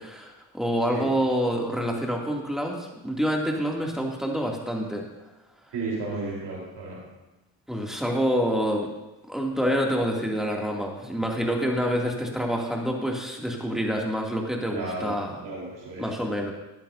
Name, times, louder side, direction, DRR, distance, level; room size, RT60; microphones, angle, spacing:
voice 1, 0.0-5.1 7.7-8.9 9.3-15.4 16.0-16.5, equal, ahead, -1 dB, 2.7 m, -27 dB
voice 2, 5.7-7.0 14.7-16.1, right 3 dB, 75° right, -4 dB, 4.2 m, -33 dB
14.5 x 10.5 x 2.8 m, 1.0 s
supercardioid pair, 55°, 39 cm